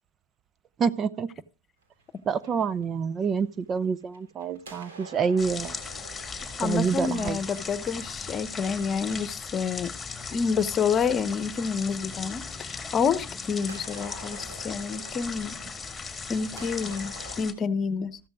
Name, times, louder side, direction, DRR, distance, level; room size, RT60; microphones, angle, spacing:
voice 1, 0.8-1.3 2.3-5.8 6.6-7.4, right 6 dB, 30° right, 0.6 m, -27 dB
sound 1, 1.8-3.6 4.0-11.3 12.7-12.8 13.7-17.4, right 2 dB, 80° right, 3.5 m, -48 dB
sound 2, 5.4-17.5, left 5 dB, 10° left, 2.1 m, -38 dB
voice 2, 6.6-9.9 10.3-15.6 16.3-18.2, left 6 dB, 30° left, 1.0 m, -28 dB
14.0 x 12.5 x 2.4 m
hypercardioid pair, 100°, 0 cm